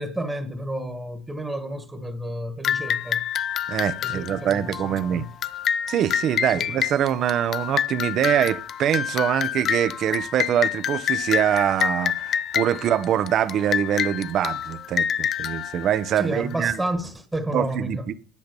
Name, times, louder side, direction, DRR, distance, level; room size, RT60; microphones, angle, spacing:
voice 1, 0.0-3.2 4.0-5.3 6.5-6.7 16.2-18.1, right 1 dB, 10° right, 1.4 m, -31 dB
sound 1, 2.6-16.8, left 9 dB, 45° left, 0.5 m, -28 dB
voice 2, 3.7-5.2 5.9-16.7 17.5-18.1, right 10 dB, 55° right, 0.7 m, -24 dB
10.5 x 5.2 x 6.9 m
supercardioid pair, 95°, 0 cm